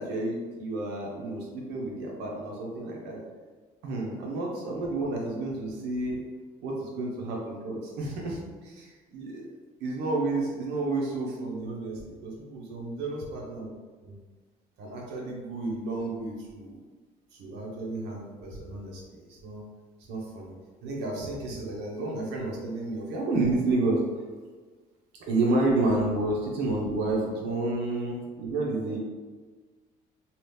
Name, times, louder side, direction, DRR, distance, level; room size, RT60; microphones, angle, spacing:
voice 1, 0.0-3.2 3.8-6.2 6.6-9.5 9.8-13.7 14.0-14.2 14.8-16.8 17.3-19.6 20.1-20.5 20.8-24.0 25.2-29.0, right 2 dB, 85° right, -2 dB, 0.9 m, -31 dB
2.9 x 2.4 x 3.4 m, 1.4 s
cardioid pair, 110°, 17 cm